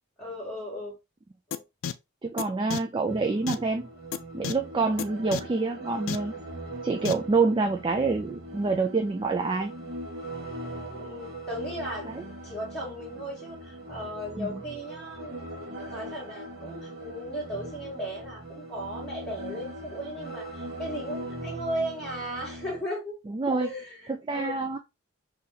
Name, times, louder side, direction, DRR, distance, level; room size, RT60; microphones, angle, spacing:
voice 1, 0.2-0.9 1.5-1.6 10.9-12.1 12.4-15.5 15.9-23.2 23.6-24.5, equal, 5° left, 1.3 m, -36 dB
sound 1, 1.5-1.6 1.8-1.9 2.4-2.5 2.7-2.8 3.5-3.6 4.1-4.2 4.4-4.5 5.0-5.1 5.3-5.4 6.1-6.2 7.0-7.1, left 8 dB, 70° left, 0.3 m, -30 dB
voice 2, 2.2-3.9 4.3-6.3 6.8-9.7 12.0-12.2 14.4-14.6 23.3-23.7 24.1-24.8, right 3 dB, 25° right, 0.3 m, -27 dB
sound 2, 3.1-22.8, right 1 dB, 45° right, 1.4 m, -40 dB
4.0 x 2.8 x 2.7 m
head